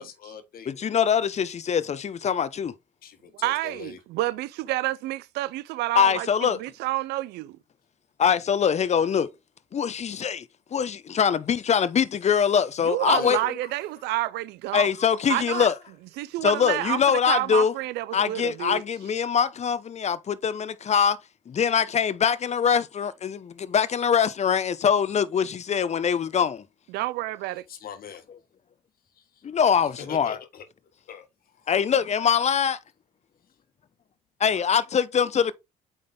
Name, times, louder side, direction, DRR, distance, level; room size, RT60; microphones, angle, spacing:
voice 1, 0.0-0.7 3.0-4.0 13.1-13.5 27.7-28.2 29.1-29.2 30.0-30.6 31.1-31.7, left 7 dB, 55° left, 1.5 m, -42 dB
voice 2, 0.7-2.7 5.9-6.6 8.2-9.3 9.7-10.5 10.7-13.4 14.7-15.7 16.4-17.7 18.1-21.2 21.5-26.6 29.4-30.4 31.7-32.8 34.4-35.5, left 7 dB, 40° left, 0.7 m, -23 dB
voice 3, 3.3-7.6 12.8-14.9 15.3-15.7 16.2-18.8 26.9-27.6, right 17 dB, 70° right, 0.5 m, -29 dB
8.6 x 3.6 x 3.5 m
hypercardioid pair, 55°, 18 cm